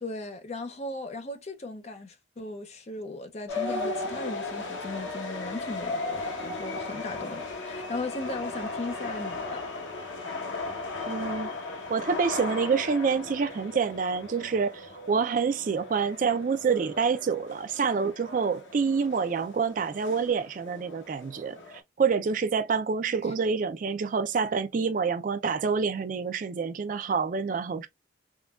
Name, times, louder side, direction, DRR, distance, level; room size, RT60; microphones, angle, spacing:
voice 1, 0.0-9.6 23.2-23.3, left 2 dB, 35° left, 0.5 m, -37 dB
sound 1, 3.5-21.8, left 3 dB, 85° left, 0.8 m, -36 dB
voice 2, 11.1-11.5 11.9-21.6 22.0-27.9, right 5 dB, 45° right, 0.3 m, -27 dB
3.6 x 2.2 x 2.3 m
head